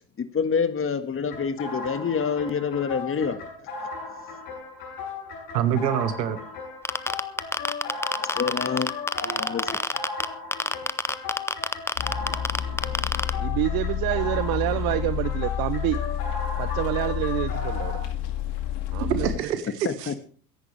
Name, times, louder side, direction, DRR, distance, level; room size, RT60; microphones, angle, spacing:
voice 1, 0.2-3.4 8.2-8.9 9.3-9.8 19.3-19.4 19.8-20.1, left 6 dB, 25° left, 10 dB, 1.6 m, -27 dB
sound 1, 1.3-18.0, left 4 dB, 70° left, 7.9 m, -36 dB
voice 2, 5.5-6.4 19.1-20.2, right 9 dB, 80° right, 11 dB, 1.7 m, -26 dB
sound 2, 6.8-10.2 10.5-13.3, left 2 dB, 5° left, 0.6 m, -25 dB
sound 3, 12.0-19.4, left 10 dB, 55° left, 2.2 m, -29 dB
voice 3, 13.4-16.0 16.6-18.0 18.9-19.3, right 18 dB, 45° right, 16 dB, 0.7 m, -27 dB
22.5 x 10.5 x 3.3 m, 0.43 s
hypercardioid pair, 75°, 49 cm